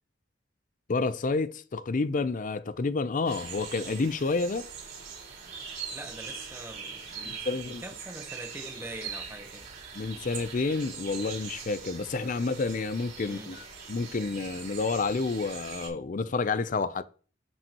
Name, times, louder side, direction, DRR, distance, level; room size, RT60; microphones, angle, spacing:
voice 1, 0.9-4.7 7.2-7.8 9.9-17.0, left 3 dB, 45° left, 0.5 m, -29 dB
sound 1, 3.2-15.9, right 6 dB, 70° right, 4.5 m, -42 dB
voice 2, 5.9-9.7 13.2-13.7, right 1 dB, 15° right, 1.0 m, -43 dB
11.0 x 5.5 x 2.9 m
head